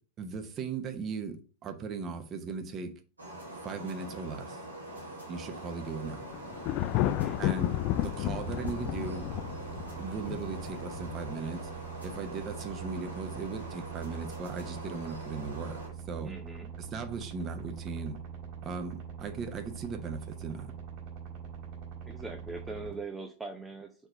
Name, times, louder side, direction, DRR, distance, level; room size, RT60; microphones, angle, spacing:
voice 1, 0.2-2.9 3.6-4.6 5.3-6.2 7.4-7.7 8.0-9.3 10.0-11.6 12.0-15.8 16.1-16.3 16.8-18.2 18.6-20.7, right 5 dB, 30° right, 1.0 m, -38 dB
sound 1, 3.2-15.9, right 1 dB, 80° right, 1.9 m, -44 dB
Thunder, 6.0-11.4, left 14 dB, 40° left, 0.4 m, -32 dB
voice 2, 7.0-7.4 16.2-16.7 22.1-24.1, right 3 dB, 10° right, 0.6 m, -42 dB
sound 2, 8.4-22.9, right 7 dB, 45° right, 2.7 m, -43 dB
4.6 x 4.4 x 5.6 m
figure-of-eight pair, 90°, 0 cm